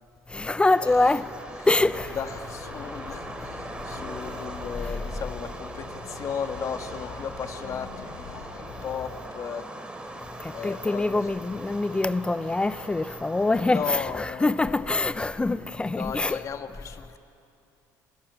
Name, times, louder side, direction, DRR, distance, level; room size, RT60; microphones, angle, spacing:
voice 1, 0.3-1.3 1.7-2.2 4.8-4.9 10.4-16.4, left 2 dB, 15° left, 0.5 m, -25 dB
sound 1, 0.6-14.1, right 1 dB, 15° right, 2.9 m, -41 dB
sound 2, 1.8-9.2, left 6 dB, 75° left, 3.3 m, -43 dB
voice 2, 2.1-9.7 10.5-11.1 13.6-15.1 15.9-17.2, left 7 dB, 45° left, 1.7 m, -36 dB
26.0 x 19.5 x 8.9 m
supercardioid pair, 100°, 8 cm